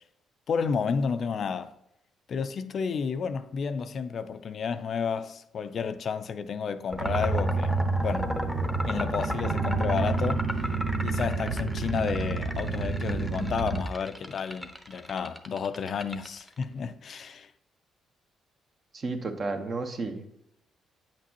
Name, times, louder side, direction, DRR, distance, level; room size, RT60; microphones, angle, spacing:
voice 1, 0.5-1.7 2.3-7.7 8.0-8.3 8.8-10.6 11.0-17.5, left 6 dB, 55° left, 0.4 m, -31 dB
sound 1, 6.9-16.6, equal, ahead, 0.8 m, -35 dB
sound 2, 7.0-13.8, right 3 dB, 75° right, 1.1 m, -29 dB
voice 2, 18.9-20.3, right 3 dB, 45° right, 1.0 m, -32 dB
8.6 x 5.8 x 2.9 m
cardioid pair, 90°, 0 cm